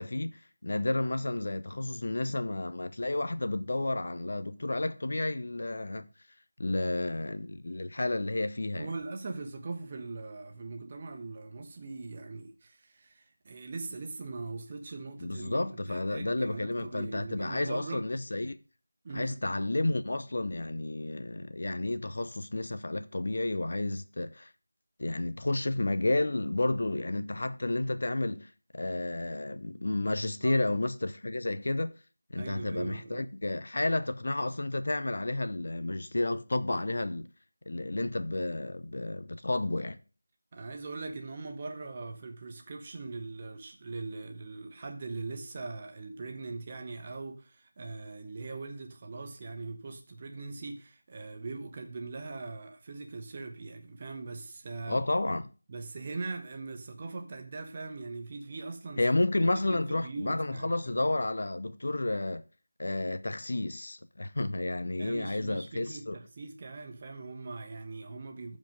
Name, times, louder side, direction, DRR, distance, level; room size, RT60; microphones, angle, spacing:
voice 1, 0.0-6.1 6.6-8.9 15.2-18.6 19.1-24.5 25.0-31.9 32.3-37.3 37.7-40.0 54.9-55.5 59.0-62.4 62.8-66.2, left 2 dB, 50° left, 0.8 m, -31 dB
voice 2, 8.8-18.0 19.0-19.4 30.4-30.7 32.3-33.3 40.5-55.1 55.7-59.0 59.4-61.0 65.0-68.6, right 3 dB, 25° right, 1.2 m, -41 dB
14.5 x 5.5 x 3.7 m
figure-of-eight pair, 165°, 0 cm